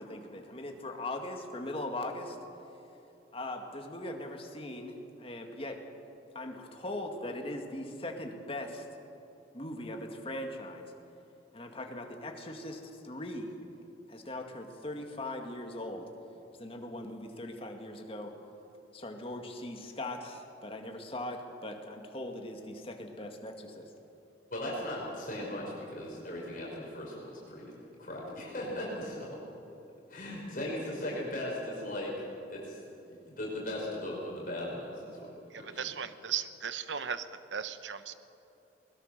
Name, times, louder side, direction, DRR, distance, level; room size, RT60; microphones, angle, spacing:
voice 1, 0.0-2.4 3.3-5.8 6.3-8.9 9.5-10.9 11.5-13.6 14.1-16.1 16.6-18.3 18.9-23.8, left 1 dB, 30° left, 3 dB, 2.1 m, -40 dB
voice 2, 24.5-27.7 28.0-29.4 30.1-32.1 32.5-35.8, left 1 dB, 50° left, -4 dB, 5.1 m, -38 dB
voice 3, 35.5-38.1, right 8 dB, 85° right, 12 dB, 0.9 m, -37 dB
21.0 x 21.0 x 6.8 m, 2.9 s
head